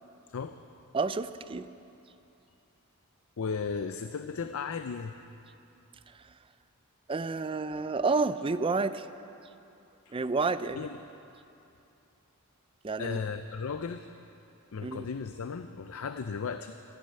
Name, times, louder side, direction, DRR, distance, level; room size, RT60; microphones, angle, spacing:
voice 1, 0.3-0.8 3.4-5.2 10.1-10.2 10.7-11.0 13.0-14.1 14.7-16.8, left 5 dB, 65° left, 9 dB, 0.5 m, -35 dB
voice 2, 0.9-1.7 7.1-9.1 10.1-10.8 12.8-13.2 14.8-15.1, right 3 dB, 25° right, 13 dB, 0.4 m, -29 dB
14.0 x 11.0 x 8.7 m, 2.7 s
head